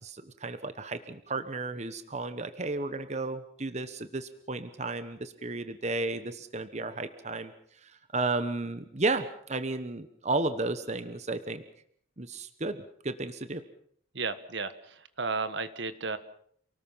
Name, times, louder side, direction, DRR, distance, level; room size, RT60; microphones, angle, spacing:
voice 1, 0.0-7.5 7.8-11.6 12.2-12.8 13.0-13.6, right 3 dB, 35° right, 10 dB, 1.1 m, -33 dB
voice 2, 14.1-16.2, right 4 dB, 70° right, 12 dB, 1.5 m, -33 dB
28.5 x 19.0 x 5.8 m, 0.63 s
head